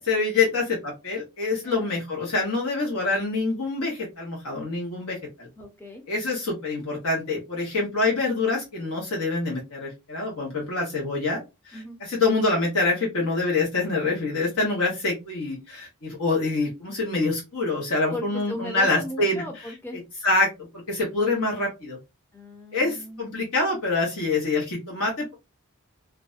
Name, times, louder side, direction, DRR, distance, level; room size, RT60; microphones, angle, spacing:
voice 1, 0.1-5.5 6.1-11.4 11.6-19.4 19.9-20.5 20.9-22.0 22.7-25.3, left 3 dB, 80° left, -3 dB, 0.9 m, -26 dB
voice 2, 5.6-6.0 11.7-12.0 18.1-20.0 22.3-23.4, left 1 dB, 10° left, 1 dB, 0.5 m, -37 dB
2.4 x 2.1 x 2.4 m, 0.24 s
head